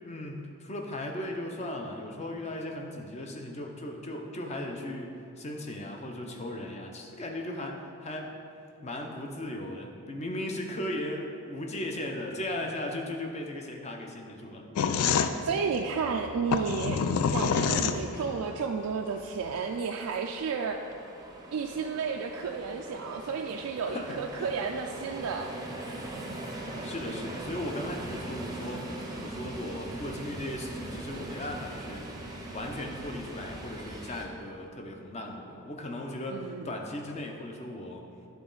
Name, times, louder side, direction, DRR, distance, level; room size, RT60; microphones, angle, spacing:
voice 1, 0.0-8.3 8.8-14.7 15.0-15.2 23.9-24.5 26.8-32.1 32.5-38.0, left 1 dB, 30° left, 2 dB, 0.6 m, -37 dB
sound 1, 14.8-18.4, left 6 dB, 85° left, 0.4 m, -27 dB
voice 2, 15.4-17.0 17.3-20.8 21.5-25.5 36.3-36.7, right 5 dB, 80° right, 2 dB, 0.3 m, -32 dB
sound 2, 17.2-34.2, right 1 dB, 15° right, 0.6 m, -41 dB
10.5 x 4.0 x 3.9 m, 2.6 s
head